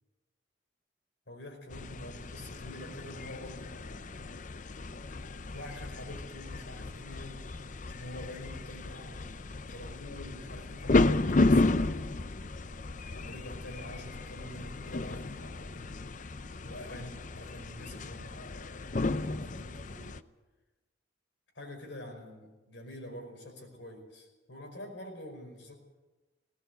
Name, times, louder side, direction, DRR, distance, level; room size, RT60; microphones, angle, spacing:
voice 1, 1.3-4.5 5.5-12.1 13.1-15.8 16.6-18.9 19.3-20.2 21.5-25.7, left 1 dB, 75° left, 3 dB, 5.2 m, -46 dB
sound 1, 1.7-20.2, left 2 dB, 40° left, 0.6 m, -33 dB
18.5 x 18.0 x 8.1 m, 1.2 s
head